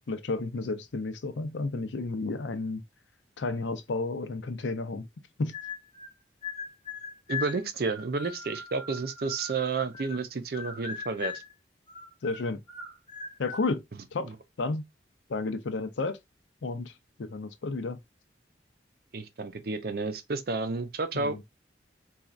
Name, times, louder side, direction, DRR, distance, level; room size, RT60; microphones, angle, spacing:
voice 1, 0.0-2.8 3.4-5.1 5.4-5.5 12.2-12.6 13.4-13.8 14.1-14.8 15.3-16.2 16.6-18.0 21.1-21.4, left 3 dB, 85° left, 0.5 m, -32 dB
sound 1, 5.5-6.1 6.4-10.2 10.5-11.5 11.9-13.7, left 5 dB, 25° left, 0.8 m, -40 dB
voice 2, 7.3-11.3 14.3-14.4 19.1-21.4, right 4 dB, 55° right, 0.5 m, -31 dB
4.1 x 2.3 x 2.4 m
head